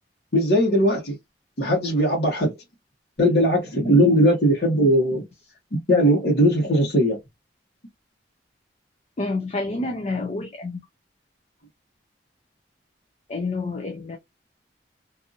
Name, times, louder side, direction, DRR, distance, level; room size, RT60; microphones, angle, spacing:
voice 1, 0.3-1.1 1.6-2.5 3.2-5.2 5.7-7.2, equal, 65° left, 1.1 m, -19 dB
voice 2, 9.2-10.8 13.3-14.2, left 3 dB, 40° left, 0.5 m, -28 dB
2.6 x 2.5 x 2.6 m
head